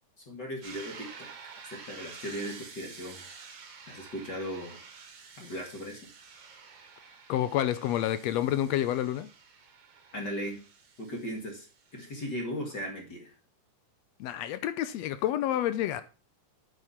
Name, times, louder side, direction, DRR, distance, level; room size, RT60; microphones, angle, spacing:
voice 1, 0.3-1.3 1.7-3.2 3.9-4.8 5.4-6.1 10.1-10.6 11.0-11.7 11.9-13.3, equal, 35° left, 2.3 m, -37 dB
sound 1, 0.6-12.3, right 5 dB, 45° right, 1.7 m, -50 dB
voice 2, 7.3-9.3 14.2-16.0, left 12 dB, 80° left, 1.5 m, -29 dB
8.6 x 6.8 x 5.7 m
omnidirectional pair, 3.7 m